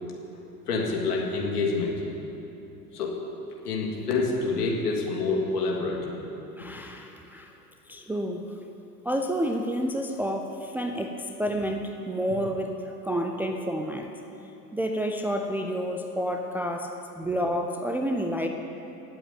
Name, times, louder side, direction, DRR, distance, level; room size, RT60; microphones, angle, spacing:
voice 1, 0.7-1.9 2.9-3.1 3.6-6.1, left 3 dB, 70° left, -1 dB, 2.8 m, -27 dB
voice 2, 6.6-7.5 7.9-8.7 9.0-14.1 14.7-18.5, equal, 5° right, 3 dB, 0.5 m, -30 dB
17.5 x 7.8 x 8.8 m, 2.9 s
figure-of-eight pair, 80°, 48 cm